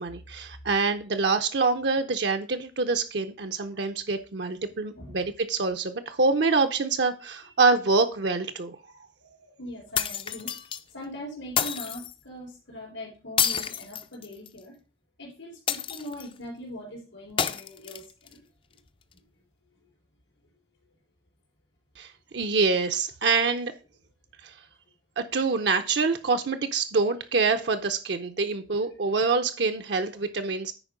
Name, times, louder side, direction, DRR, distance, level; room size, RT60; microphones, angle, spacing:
voice 1, 0.0-8.8 22.0-23.7 24.4-24.5 25.2-30.7, right 4 dB, 60° right, 6 dB, 0.6 m, -26 dB
voice 2, 9.6-10.5 10.9-14.7 15.2-18.4 19.1-19.2, equal, 80° left, -2 dB, 3.9 m, -41 dB
sound 1, 9.9-10.8 11.6-12.1 13.4-14.6 15.7-16.3 17.4-18.3, left 8 dB, 25° left, 0.4 m, -29 dB
9.9 x 4.5 x 5.0 m, 0.35 s
head